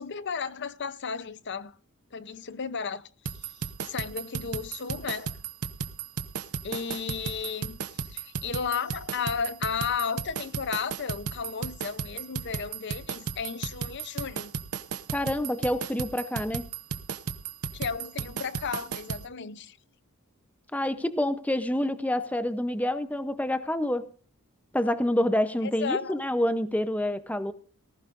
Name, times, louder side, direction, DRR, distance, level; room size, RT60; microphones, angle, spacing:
voice 1, 0.0-1.7 2.1-3.0 3.8-5.4 6.6-7.8 8.1-14.5 17.7-19.8 25.6-26.2, left 6 dB, 50° left, 0.7 m, -33 dB
sound 1, 3.3-19.2, right 6 dB, 90° right, 0.9 m, -34 dB
voice 2, 15.1-16.7 20.7-24.1 24.7-27.5, left 1 dB, 5° left, 0.7 m, -27 dB
18.5 x 15.0 x 2.5 m
head